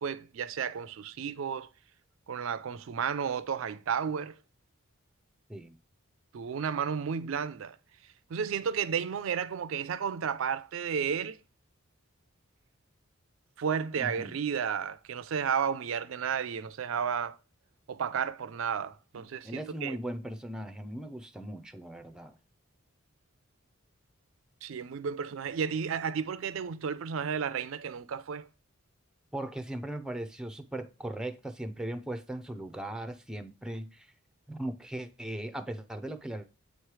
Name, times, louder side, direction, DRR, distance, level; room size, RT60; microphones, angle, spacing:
voice 1, 0.0-1.7 2.3-4.4 6.3-7.8 8.3-11.4 13.6-17.4 17.9-20.0 24.6-28.5, right 7 dB, 70° right, 0.4 m, -32 dB
voice 2, 14.0-14.4 19.4-22.4 29.3-34.1 34.5-36.5, right 1 dB, 5° right, 0.5 m, -38 dB
8.1 x 3.2 x 4.7 m
head